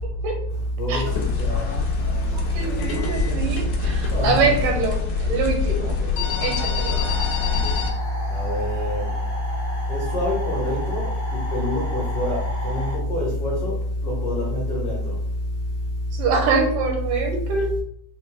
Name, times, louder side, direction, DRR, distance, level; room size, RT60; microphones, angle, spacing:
voice 1, 0.8-1.1 1.4-1.8 4.1-4.3 6.1-6.2 7.1-7.2 8.3-9.1 9.9-13.8 14.0-15.2, left 1 dB, 60° left, -6 dB, 1.6 m, -25 dB
sound 1, 1.0-7.9, left 6 dB, 80° left, 1.7 m, -25 dB
voice 2, 2.3-6.0 6.4-7.0 16.1-17.8, right 4 dB, 80° right, 2 dB, 2.2 m, -24 dB
sound 2, 7.0-13.0, equal, 25° right, 0.6 m, -35 dB
6.0 x 2.2 x 3.3 m, 0.67 s
omnidirectional pair, 4.0 m